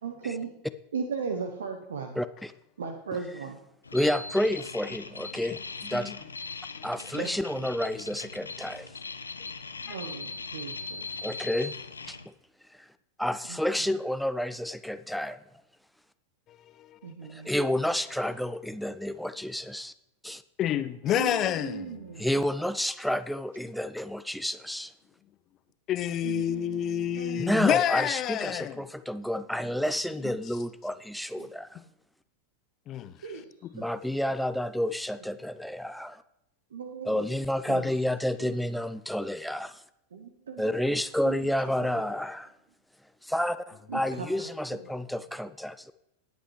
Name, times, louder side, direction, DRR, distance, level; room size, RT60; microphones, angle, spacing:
voice 1, 0.0-0.5 0.9-2.2 2.8-3.6 7.1-7.3 7.5-7.7 9.8-11.1 13.5-13.6 17.0-17.5 21.2-22.3 26.2-27.5 31.4-31.5 33.2-33.4 33.8-33.9 36.7-37.4 37.7-37.9 38.4-38.6 40.1-40.7 41.3-41.5 41.8-41.9 43.9-44.3, right 5 dB, 65° right, 0.9 m, -37 dB
voice 2, 2.2-2.5 3.9-6.1 6.8-8.9 11.2-11.7 12.0-12.2 13.2-15.4 17.3-19.9 20.2-20.4 22.2-24.9 27.4-31.8 33.7-36.2 37.1-39.8 40.6-42.5 43.2-45.9, left 1 dB, ahead, 0.4 m, -30 dB
sound 1, 3.8-12.3, left 4 dB, 75° left, 0.6 m, -40 dB
voice 3, 16.5-17.3 20.6-22.2 25.9-28.8 30.2-30.3 32.9-33.4, left 11 dB, 30° left, 0.7 m, -29 dB
19.0 x 8.2 x 3.2 m
figure-of-eight pair, 90°, 0 cm